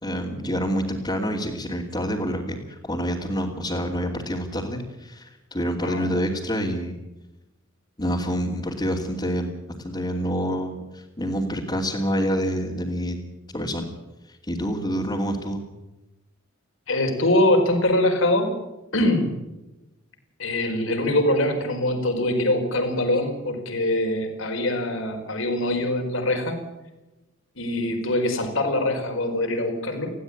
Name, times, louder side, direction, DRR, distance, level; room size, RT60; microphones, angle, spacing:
voice 1, 0.0-6.9 8.0-9.5 9.8-13.2 13.5-13.9 14.3-15.6, equal, 25° left, -5 dB, 2.9 m, -27 dB
voice 2, 16.9-18.6 18.9-19.3 20.4-26.6 27.6-30.1, left 1 dB, 70° left, 5 dB, 4.7 m, -23 dB
20.5 x 16.0 x 8.6 m, 1.0 s
head